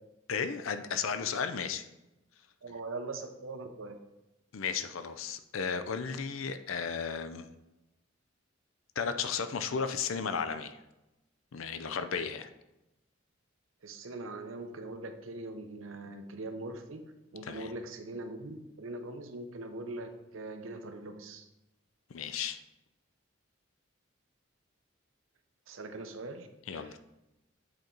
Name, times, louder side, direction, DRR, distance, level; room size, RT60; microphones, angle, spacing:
voice 1, 0.3-1.9 4.5-7.5 9.0-10.8 11.5-12.5 17.4-17.7 22.1-22.6 26.7-27.0, left 6 dB, 90° left, 10 dB, 0.5 m, -34 dB
voice 2, 2.6-4.0 13.8-17.0 17.3-21.5 25.7-26.5 26.7-27.0, right 2 dB, 80° right, 7 dB, 0.8 m, -41 dB
7.9 x 4.4 x 3.9 m, 0.96 s
head